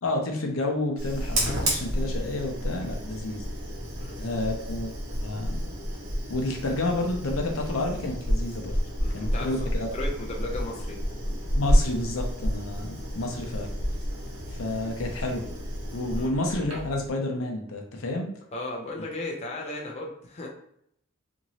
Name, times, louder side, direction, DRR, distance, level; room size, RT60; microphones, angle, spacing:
voice 1, 0.0-3.4 4.2-4.9 5.2-5.7 6.3-8.8 9.1-9.9 11.5-13.7 14.5-15.5 15.9-18.3, left 2 dB, 70° left, 1 dB, 0.6 m, -30 dB
Fire, 1.0-17.1, equal, 85° right, 1.0 m, -30 dB
voice 2, 9.0-11.0 16.2-16.3 18.5-20.5, left 2 dB, 30° left, -2 dB, 0.5 m, -36 dB
3.0 x 2.6 x 2.7 m, 0.71 s
head